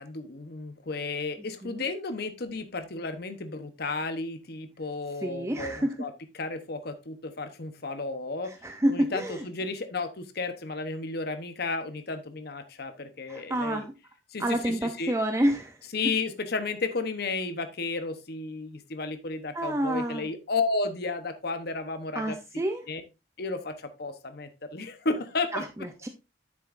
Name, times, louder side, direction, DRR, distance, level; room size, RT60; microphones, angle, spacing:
voice 1, 0.0-8.5 8.9-13.9 14.3-15.1 15.9-22.4 22.9-23.0 23.4-25.6, left 3 dB, 55° left, 9 dB, 0.9 m, -33 dB
voice 2, 5.2-6.0 8.4-9.5 13.3-13.9 14.4-15.8 19.5-20.3 22.1-22.9 25.5-26.1, right 1 dB, 15° right, 5 dB, 0.6 m, -29 dB
9.7 x 7.5 x 2.6 m, 0.26 s
head